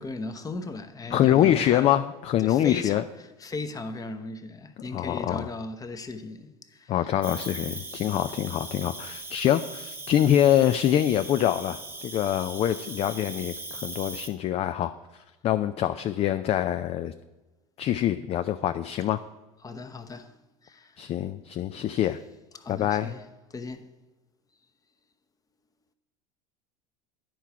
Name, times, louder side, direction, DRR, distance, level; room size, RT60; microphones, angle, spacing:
voice 1, 0.0-1.9 2.4-7.1 7.5-7.6 19.6-20.3 20.6-21.1 22.5-23.9, left 3 dB, 20° left, 0.9 m, -37 dB
voice 2, 1.1-3.0 4.9-5.5 6.9-17.1 17.8-19.2 21.0-22.2 22.7-23.1, left 11 dB, 40° left, 0.4 m, -25 dB
Cricket, 7.2-14.3, right 2 dB, 15° right, 1.0 m, -39 dB
10.0 x 4.6 x 5.7 m
hypercardioid pair, 80°, 17 cm